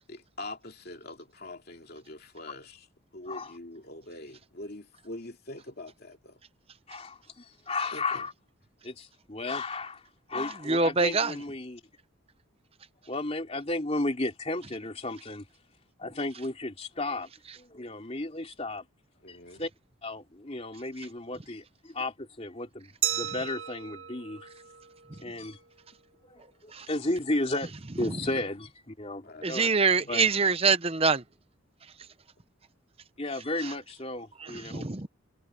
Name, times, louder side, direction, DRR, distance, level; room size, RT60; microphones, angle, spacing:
voice 1, 0.1-2.9 3.1-6.4 7.9-8.2 19.2-19.6 29.2-29.5 30.0-30.2 34.5-34.9, left 2 dB, 50° left, 2.6 m, -44 dB
voice 2, 6.9-8.3 8.8-11.8 13.1-15.4 16.0-17.3 17.6-18.8 19.3-19.7 20.0-24.5 25.2-25.6 26.3-29.7 30.1-30.3 33.2-34.9, left 2 dB, 30° left, 3.1 m, -34 dB
voice 3, 10.7-11.3 26.7-26.9 29.4-31.2 34.7-35.1, right 4 dB, 30° right, 0.8 m, -24 dB
Glass, 23.0-25.7, right 12 dB, 75° right, 2.2 m, -35 dB
head